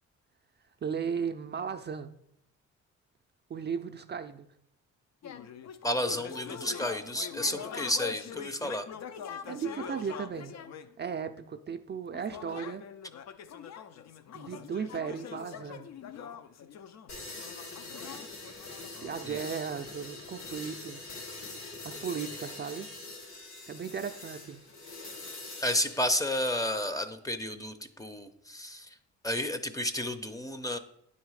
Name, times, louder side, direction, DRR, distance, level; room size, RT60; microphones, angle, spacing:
voice 1, 0.8-2.1 3.5-4.5 7.5-7.6 9.5-10.5 11.0-12.8 14.3-15.9 19.0-21.1 21.8-22.9 23.7-24.6, right 6 dB, 35° right, 6 dB, 0.4 m, -36 dB
sound 1, 5.2-10.9 12.1-19.3, left 8 dB, 60° left, 0.6 m, -43 dB
voice 2, 5.8-8.9 19.2-19.4 25.6-28.9 29.2-30.8, left 1 dB, 10° left, 10 dB, 0.6 m, -31 dB
sound 2, 17.1-26.9, left 2 dB, 80° left, 2.4 m, -44 dB
9.6 x 4.1 x 4.7 m, 0.76 s
cardioid pair, 90°, 30 cm